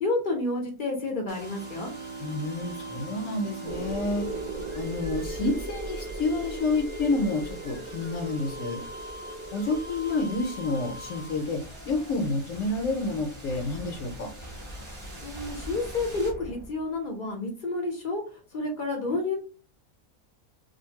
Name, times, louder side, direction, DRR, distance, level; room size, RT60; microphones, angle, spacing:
voice 1, 0.0-1.9 15.2-18.2 18.5-19.4, left 2 dB, 50° left, 1 dB, 0.6 m, -30 dB
Bowed string instrument, 0.9-6.4, right 6 dB, 85° right, 0.4 m, -42 dB
sound 1, 1.3-17.1, equal, 25° right, 0.7 m, -43 dB
voice 2, 2.2-4.3 4.7-8.8 9.5-14.3, left 2 dB, 70° left, 3 dB, 0.9 m, -29 dB
sound 2, 3.6-11.5, right 2 dB, 60° right, 0.8 m, -38 dB
2.6 x 2.5 x 2.8 m, 0.38 s
omnidirectional pair, 1.6 m